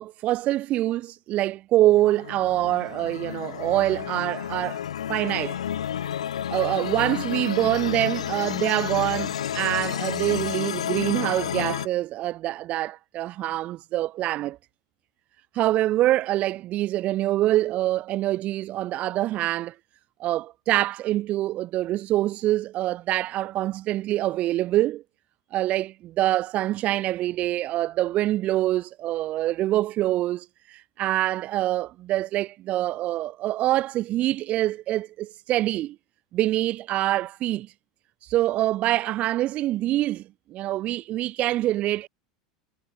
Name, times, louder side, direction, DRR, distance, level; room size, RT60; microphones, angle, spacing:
voice 1, 0.0-4.8 5.1-5.6 6.5-14.6 15.5-19.7 20.2-25.0 25.5-36.0 36.3-37.7 38.2-40.2 40.5-42.1, right 15 dB, 45° right, 1.0 m, -25 dB
sound 1, 1.9-11.9, left 9 dB, 80° left, 0.9 m, -31 dB
hypercardioid pair, 85°, 3 cm